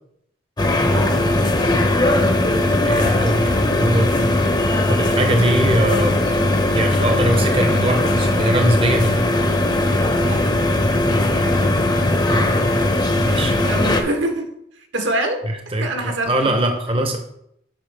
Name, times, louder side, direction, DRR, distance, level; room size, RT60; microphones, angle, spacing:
sound 1, 0.6-14.0, left 1 dB, 25° left, 0.7 m, -19 dB
voice 1, 2.8-4.1 4.9-6.2 6.7-9.2 12.3-12.7 13.2-13.6 15.5-17.2, right 1 dB, 30° right, 5 dB, 0.7 m, -21 dB
voice 2, 13.7-14.5 14.9-15.5 15.8-16.5, right 1 dB, 80° right, 4 dB, 1.2 m, -24 dB
8.8 x 5.4 x 3.4 m, 0.75 s
head